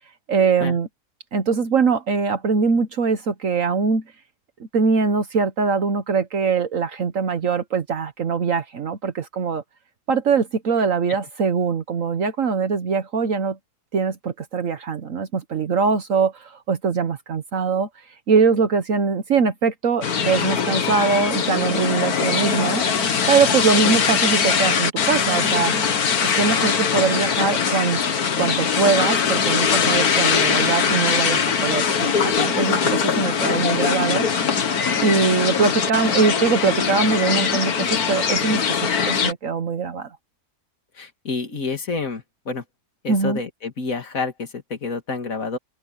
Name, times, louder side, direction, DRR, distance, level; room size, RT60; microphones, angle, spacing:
voice 1, 0.3-0.9 1.3-4.0 4.6-9.6 10.1-13.6 13.9-17.9 18.3-22.8 23.3-25.7 26.4-28.0 28.4-34.3 35.0-38.6 39.0-40.1 43.1-43.4, right 5 dB, 65° right, 1.5 m, -22 dB
sound 1, 20.0-39.3, left 6 dB, 85° left, 2.0 m, -21 dB
voice 2, 40.9-42.6 43.0-45.6, left 4 dB, 65° left, 2.7 m, -29 dB
open air
omnidirectional pair, 1.5 m